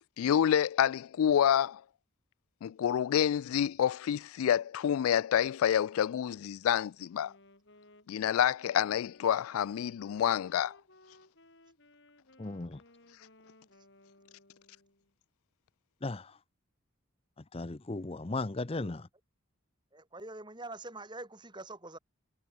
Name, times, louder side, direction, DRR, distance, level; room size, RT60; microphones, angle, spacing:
voice 1, 0.2-1.8 2.6-7.3 8.1-10.8, left 9 dB, 85° left, 0.3 m, -28 dB
Wind instrument woodwind instrument, 7.1-15.1, left 2 dB, 55° left, 5.7 m, -60 dB
voice 2, 12.4-12.8 16.0-16.3 17.5-19.0, left 2 dB, 25° left, 0.6 m, -36 dB
voice 3, 19.9-22.0, right 2 dB, 20° right, 3.6 m, -45 dB
head